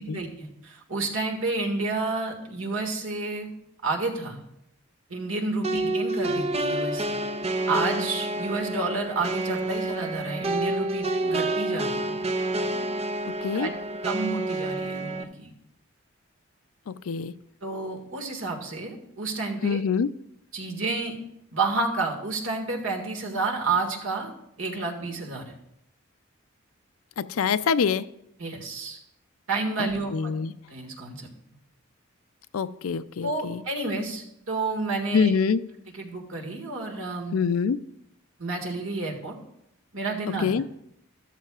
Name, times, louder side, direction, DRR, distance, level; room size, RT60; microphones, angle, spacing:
voice 1, 0.0-3.5 3.8-4.4 5.1-7.2 7.7-12.2 12.6-12.8 13.5-13.7 14.0-15.5 17.6-19.8 20.5-21.2 21.5-24.3 24.6-25.6 28.4-29.0 29.5-30.3 30.7-31.3 33.2-35.3 35.9-37.4 38.4-39.4 39.9-40.6, right 3 dB, 70° right, 2 dB, 1.8 m, -30 dB
sound 1, 5.6-15.2, right 2 dB, 30° right, 0.6 m, -28 dB
voice 2, 16.9-17.3 19.6-20.1 27.2-28.1 29.8-30.5 32.5-33.6 35.1-35.6 37.3-37.8 40.4-40.6, left 6 dB, 80° left, 13 dB, 0.4 m, -25 dB
13.0 x 13.0 x 2.4 m, 0.77 s
head